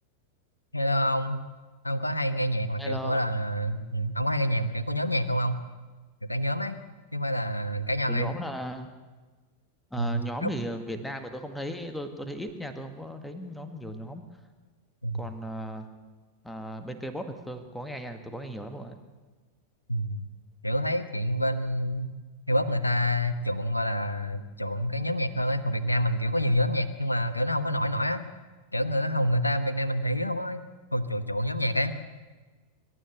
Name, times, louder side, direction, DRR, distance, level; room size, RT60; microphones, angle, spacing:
voice 1, 0.7-1.4 1.8-5.6 6.3-6.8 7.1-8.3 10.0-10.5 15.0-15.3 19.9-20.2 20.6-22.1 22.5-28.2 28.7-30.6 30.9-31.9, equal, 85° left, 12 dB, 1.1 m, -27 dB
voice 2, 2.8-3.3 8.1-8.9 9.9-14.2 15.1-15.9 16.4-19.0, equal, 5° left, 7 dB, 1.9 m, -36 dB
26.0 x 12.5 x 8.0 m, 1.3 s
figure-of-eight pair, 90°, 0 cm